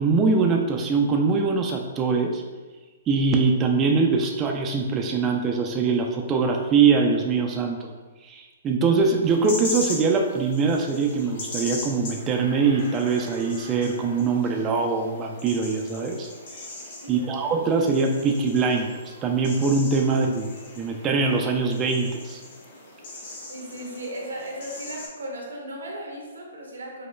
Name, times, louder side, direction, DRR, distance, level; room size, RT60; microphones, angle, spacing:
voice 1, 0.0-2.4 3.1-7.9 8.2-16.3 17.1-20.5 20.8-22.4, right 4 dB, 20° right, 2 dB, 0.3 m, -23 dB
sound 1, 9.3-25.1, left 2 dB, 55° left, 0.8 m, -39 dB
voice 2, 17.0-17.4 20.1-20.2 23.5-27.1, right 1 dB, 85° right, -1 dB, 0.8 m, -36 dB
5.0 x 2.1 x 2.2 m, 1.3 s
hypercardioid pair, 140°, 0 cm